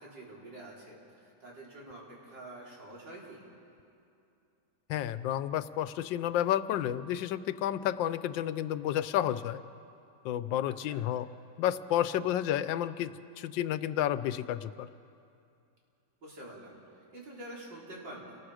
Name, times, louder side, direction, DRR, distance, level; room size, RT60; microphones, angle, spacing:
voice 1, 0.0-3.4 10.6-11.0 16.2-16.8 17.1-18.4, right 1 dB, 75° right, -4 dB, 4.5 m, -47 dB
voice 2, 4.9-9.6 10.2-11.3 11.6-14.9, left 11 dB, 90° left, 14 dB, 1.4 m, -31 dB
28.5 x 19.0 x 4.9 m, 2.6 s
omnidirectional pair, 2.0 m